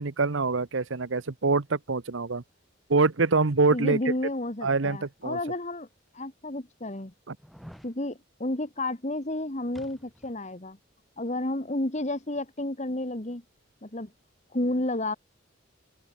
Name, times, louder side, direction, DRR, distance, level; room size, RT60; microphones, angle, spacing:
voice 1, 0.0-2.4 2.9-4.0 4.6-5.4 7.3-7.4, right 3 dB, 75° right, 1.0 m, -25 dB
voice 2, 3.7-5.9 6.1-7.1 7.8-10.8 11.2-13.4 13.8-14.1 14.5-15.2, left 1 dB, 35° left, 1.8 m, -31 dB
sound 1, 5.4-5.5 6.2-6.3 7.4-7.9 9.7-10.4 10.7-10.8, equal, ahead, 3.2 m, -49 dB
head